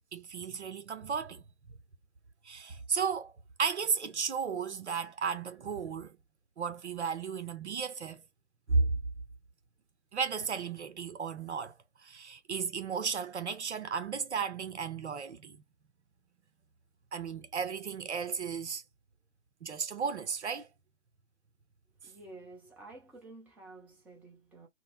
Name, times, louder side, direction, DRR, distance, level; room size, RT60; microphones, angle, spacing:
voice 1, 0.1-1.4 2.4-3.3 3.6-6.2 6.6-8.2 8.7-8.9 10.1-11.7 12.0-15.6 17.1-18.8 19.6-20.7, right 5 dB, 75° right, 0.7 m, -34 dB
voice 2, 22.0-24.7, right 2 dB, 5° right, 0.7 m, -51 dB
3.8 x 2.0 x 2.2 m
figure-of-eight pair, 120°, 35 cm